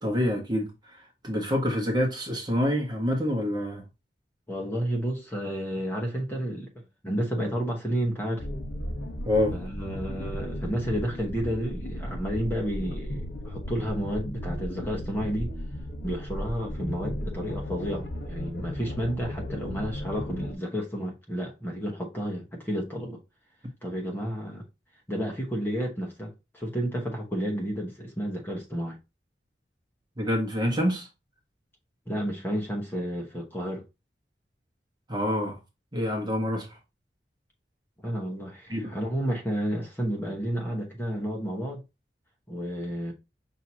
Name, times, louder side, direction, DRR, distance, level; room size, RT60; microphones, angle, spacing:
voice 1, 0.0-3.8 9.2-9.6 30.2-31.1 35.1-35.6 35.9-36.8 38.7-39.0, left 1 dB, 25° right, 1.1 m, -27 dB
voice 2, 4.5-6.7 7.0-8.5 9.5-15.5 16.0-23.2 23.8-24.6 25.1-29.0 32.1-33.8 38.0-41.8 42.5-43.1, equal, 10° left, 1.0 m, -31 dB
sound 1, 8.4-20.5, equal, 80° left, 1.2 m, -35 dB
5.9 x 2.8 x 2.8 m
head